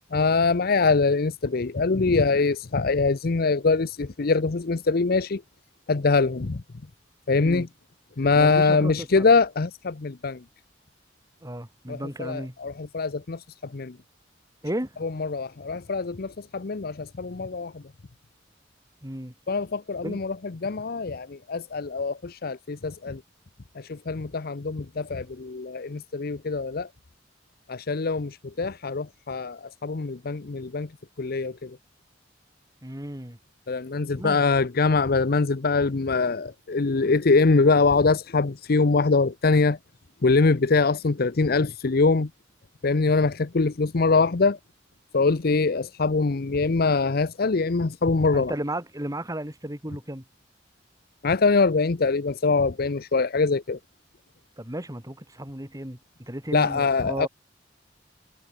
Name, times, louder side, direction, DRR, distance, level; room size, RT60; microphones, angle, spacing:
voice 1, 0.1-5.4 5.9-6.6 7.3-7.7 8.2-10.4 11.9-14.0 15.0-17.8 19.5-20.4 20.6-23.2 23.8-26.9 27.7-30.9 31.2-31.8 33.7-39.8 40.2-42.3 42.8-44.6 45.1-48.5 51.2-53.8 56.5-57.3, left 4 dB, 55° left, 0.7 m, -23 dB
voice 2, 8.4-9.3 11.4-12.6 14.6-15.1 19.0-19.3 20.0-20.2 32.8-33.4 34.2-34.4 48.3-50.2 54.6-57.3, right 1 dB, 20° right, 6.1 m, -34 dB
head